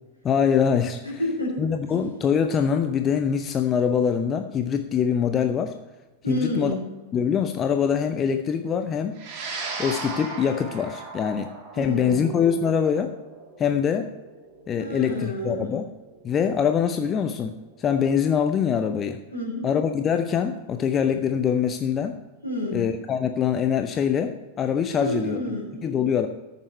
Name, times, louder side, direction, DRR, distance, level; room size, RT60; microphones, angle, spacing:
voice 1, 0.2-1.0 1.6-5.7 6.3-6.7 7.1-9.2 9.8-13.1 13.6-14.1 14.7-15.9 16.2-19.2 19.6-22.2 22.7-25.4 25.8-26.3, left 7 dB, 25° left, 7 dB, 0.6 m, -24 dB
voice 2, 1.0-1.7 6.2-6.8 11.7-12.3 14.8-15.7 19.3-19.7 22.4-22.9 24.9-25.9, left 1 dB, 85° left, -4 dB, 3.6 m, -29 dB
sound 1, 9.2-17.7, right 3 dB, 35° right, 3.0 m, -38 dB
14.0 x 6.8 x 5.4 m, 1.2 s
figure-of-eight pair, 90°, 0 cm